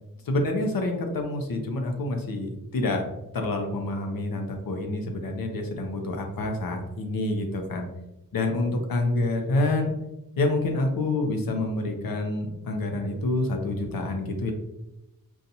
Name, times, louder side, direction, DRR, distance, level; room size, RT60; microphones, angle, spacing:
voice 1, 0.2-3.1 3.3-7.9 8.3-9.9 10.4-14.5, left 2 dB, 75° left, 3 dB, 0.7 m, -27 dB
4.0 x 2.4 x 2.7 m, 0.92 s
wide cardioid pair, 75°, 35 cm